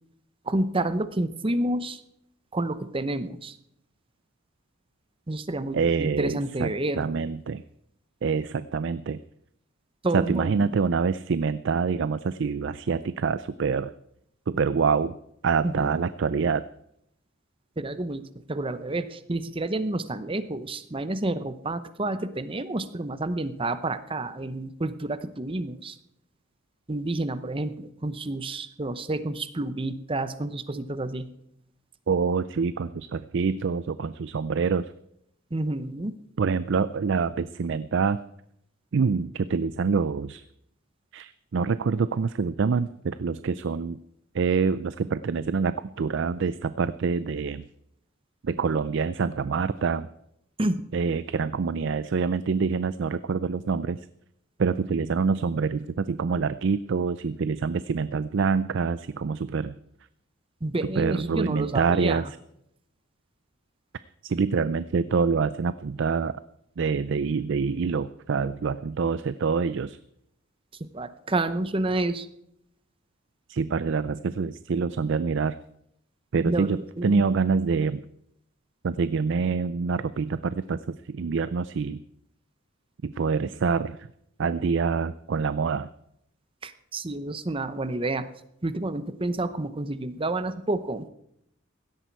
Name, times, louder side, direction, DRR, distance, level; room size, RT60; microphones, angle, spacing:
voice 1, 0.5-2.0 2.5-3.6 5.3-7.1 10.0-10.7 15.6-16.0 17.8-18.2 18.5-26.0 26.9-31.3 35.5-36.1 50.6-50.8 60.6-62.3 70.8-72.3 76.5-77.2 86.6-88.3 88.6-91.1, right 2 dB, 25° right, 12 dB, 0.8 m, -29 dB
voice 2, 5.7-6.7 7.0-7.6 8.2-9.2 10.1-13.9 14.5-15.2 15.4-16.7 32.1-34.9 36.4-38.2 38.9-40.4 41.1-44.0 44.3-47.6 48.4-50.1 50.9-54.0 54.6-59.7 61.0-62.2 64.2-66.4 66.8-70.0 73.5-75.6 76.3-78.0 78.8-82.0 83.0-84.0 84.4-85.9, right 5 dB, 60° right, 15 dB, 0.4 m, -26 dB
16.5 x 12.5 x 4.7 m, 0.76 s
head